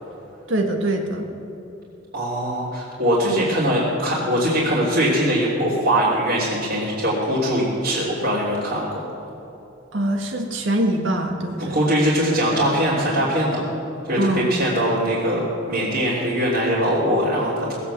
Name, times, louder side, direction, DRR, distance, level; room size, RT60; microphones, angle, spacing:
voice 1, 0.5-1.3 9.9-11.8 14.2-14.5, right 1 dB, 80° right, 3 dB, 1.9 m, -23 dB
voice 2, 2.1-9.0 11.7-13.6 14.1-17.8, equal, 55° right, -9 dB, 3.3 m, -21 dB
19.5 x 8.5 x 7.1 m, 3.0 s
head